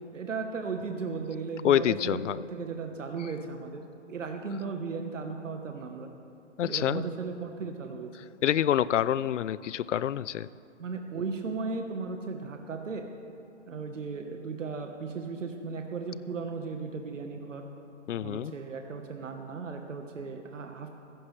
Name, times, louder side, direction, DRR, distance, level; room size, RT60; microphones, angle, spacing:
voice 1, 0.1-6.1 6.6-8.1 10.8-13.1 13.7-17.6 18.2-20.9, right 4 dB, 85° right, 4 dB, 1.2 m, -36 dB
voice 2, 1.6-2.4 6.6-7.0 8.4-10.5 18.1-18.5, left 10 dB, 75° left, 19 dB, 0.5 m, -26 dB
15.5 x 15.0 x 3.2 m, 2.6 s
hypercardioid pair, 165°, 37 cm